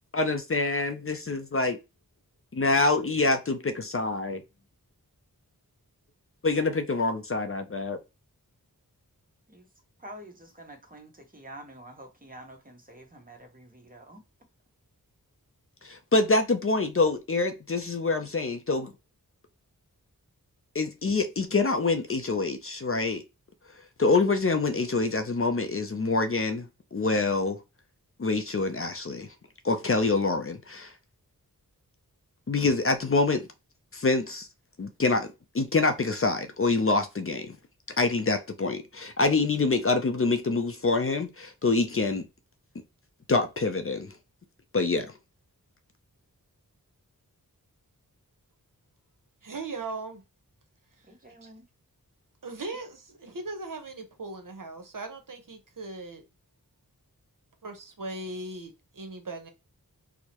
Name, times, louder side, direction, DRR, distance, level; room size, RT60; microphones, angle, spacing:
voice 1, 0.1-1.8 2.5-4.4 6.4-8.0 15.8-18.9 20.7-23.2 24.0-26.7 26.9-27.6 28.2-29.3 29.6-30.9 32.5-33.5 33.9-34.5 34.8-35.3 35.5-37.6 38.0-42.3 43.3-44.1 44.7-45.1, left 3 dB, 40° left, 0.5 m, -26 dB
voice 2, 10.0-14.2 51.1-51.6, right 1 dB, 25° right, 1.0 m, -47 dB
voice 3, 49.4-50.2 51.4-51.5 52.4-56.2 57.6-59.5, right 2 dB, 65° right, 0.9 m, -38 dB
4.5 x 2.1 x 2.9 m
wide cardioid pair, 70°, 36 cm